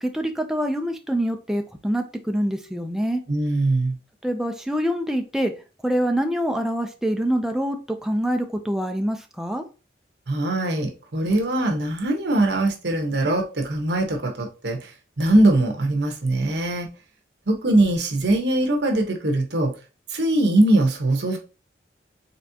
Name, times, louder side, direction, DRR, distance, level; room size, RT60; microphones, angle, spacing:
voice 1, 0.0-3.2 4.2-5.5 5.8-9.6, equal, 5° right, 4 dB, 0.5 m, -25 dB
voice 2, 3.3-4.0 10.3-14.9 15.2-16.9 17.5-19.7 20.1-21.4, right 1 dB, 75° right, 2 dB, 1.1 m, -21 dB
4.2 x 3.5 x 2.8 m, 0.32 s
head